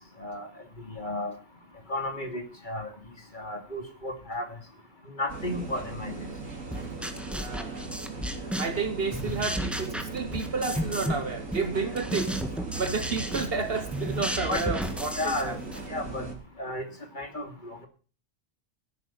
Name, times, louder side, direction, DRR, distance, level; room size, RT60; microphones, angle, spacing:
voice 1, 0.9-1.3 1.9-2.9 3.3-4.5 5.1-6.3 14.5-14.6 15.1-15.6 15.9-16.3 16.6-16.9 17.2-17.5, left 1 dB, 40° left, 2.7 m, -33 dB
sound 1, 5.3-16.3, right 3 dB, 85° right, 3.2 m, -38 dB
sound 2, 6.7-8.8 9.1-11.2 11.5-15.9, equal, ahead, 1.6 m, -33 dB
voice 2, 7.3-7.7 8.6-12.4 12.7-15.6, right 4 dB, 50° right, 1.2 m, -31 dB
16.0 x 9.6 x 5.6 m
omnidirectional pair, 1.3 m